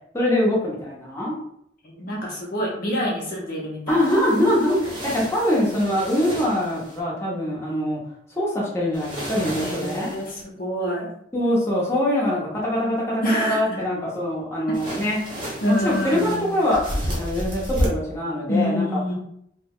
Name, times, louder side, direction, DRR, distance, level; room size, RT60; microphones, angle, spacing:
voice 1, 0.1-1.3 3.9-8.0 8.3-10.1 11.3-15.4 15.6-19.0, left 1 dB, 15° left, -5 dB, 0.8 m, -23 dB
voice 2, 1.8-4.0 9.6-11.1 13.2-13.8 15.6-16.5 18.5-19.1, equal, 50° left, -3 dB, 0.8 m, -26 dB
sound 1, 3.9-7.0 8.9-10.4 14.7-17.9, equal, 25° right, 0.9 m, -32 dB
2.9 x 2.1 x 3.6 m, 0.73 s
head